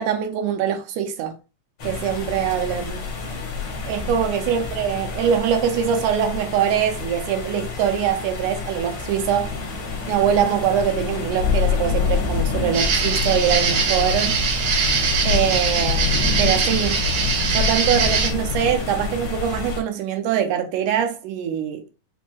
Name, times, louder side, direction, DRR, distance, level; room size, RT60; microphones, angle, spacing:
voice 1, 0.0-1.3 1.8-3.0 3.8-9.5 10.1-14.4 15.2-17.0 17.5-21.9, right 9 dB, 80° right, 1.9 m, -23 dB
sound 1, 1.8-19.8, left 5 dB, 75° left, 1.0 m, -27 dB
sound 2, 12.7-18.3, right 5 dB, 60° right, 2.3 m, -22 dB
5.2 x 2.1 x 2.9 m
omnidirectional pair, 3.9 m